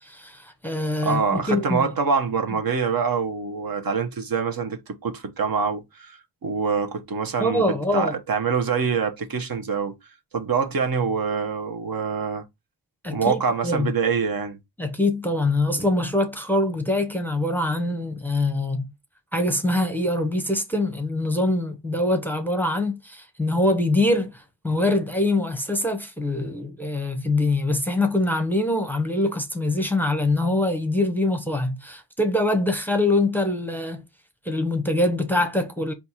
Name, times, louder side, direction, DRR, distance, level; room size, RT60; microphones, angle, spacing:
voice 1, 0.0-1.9 7.4-8.1 13.0-13.9 14.8-18.9 19.3-34.0 34.4-35.9, left 2 dB, 5° left, 0.8 m, -24 dB
voice 2, 1.0-7.6 7.9-10.0 10.3-12.4 13.1-14.6, right 5 dB, 55° right, 0.9 m, -25 dB
4.3 x 2.5 x 4.1 m
cardioid pair, 80°, 42 cm